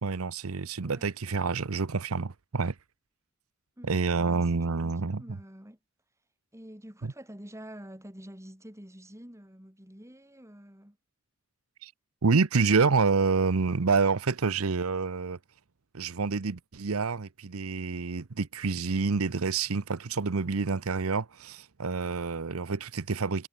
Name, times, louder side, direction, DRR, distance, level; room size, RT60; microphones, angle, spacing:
voice 1, 0.0-2.7 3.9-5.4 11.8-11.9 12.2-15.4 15.9-23.5, right 4 dB, 85° right, 0.8 m, -28 dB
voice 2, 3.8-5.8 6.5-11.0, equal, 15° right, 4.3 m, -48 dB
head